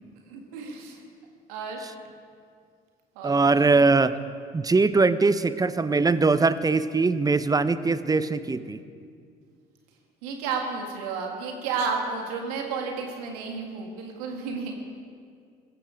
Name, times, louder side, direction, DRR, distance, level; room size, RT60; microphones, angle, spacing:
voice 1, 0.3-1.0 1.5-1.9 3.2-3.8 10.2-14.7, right 5 dB, 90° right, 2 dB, 2.0 m, -32 dB
voice 2, 3.2-4.2 4.5-8.8, right 3 dB, 20° right, 14 dB, 0.7 m, -21 dB
16.5 x 14.0 x 5.1 m, 2.2 s
supercardioid pair, 65°, 19 cm